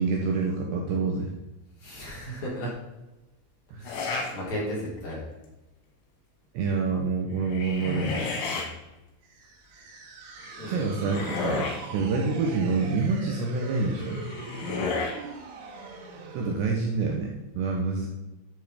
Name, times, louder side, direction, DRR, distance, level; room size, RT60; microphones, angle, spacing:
voice 1, 0.0-1.3 3.7-4.0 6.5-8.2 10.7-14.2 16.3-18.1, right 4 dB, 70° right, 1 dB, 2.8 m, -27 dB
voice 2, 1.8-2.7 3.8-5.2 8.4-8.7 10.6-10.9 11.9-12.0 14.6-14.9, equal, 40° left, -5 dB, 4.1 m, -35 dB
sound 1, 3.9-4.3 4.9-5.3 7.3-8.7 10.4-11.9 13.8-15.2, left 4 dB, 85° left, 4.9 m, -32 dB
sound 2, 9.2-16.7, right 5 dB, 85° right, 4.3 m, -43 dB
12.0 x 7.3 x 5.2 m, 1.0 s
omnidirectional pair, 5.9 m